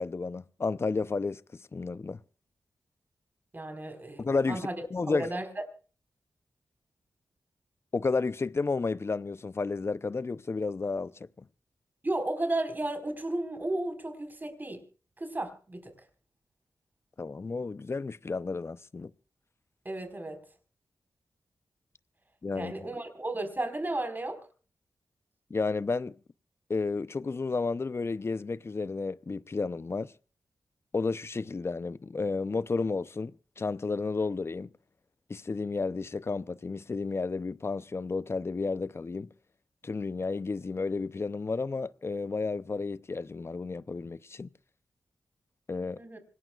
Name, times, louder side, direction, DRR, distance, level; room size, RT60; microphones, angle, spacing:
voice 1, 0.0-2.2 4.2-5.3 7.9-11.5 17.2-19.1 22.4-22.9 25.5-26.2 26.7-30.1 30.9-34.7 35.3-39.3 39.8-44.5 45.7-46.0, left 4 dB, 40° left, 0.7 m, -32 dB
voice 2, 3.5-4.7 5.1-5.5 12.0-14.8 15.2-15.9 19.8-20.4 22.5-24.4 46.0-46.2, right 2 dB, 30° right, 4.7 m, -33 dB
26.0 x 18.5 x 2.4 m
cardioid pair, 45°, 6 cm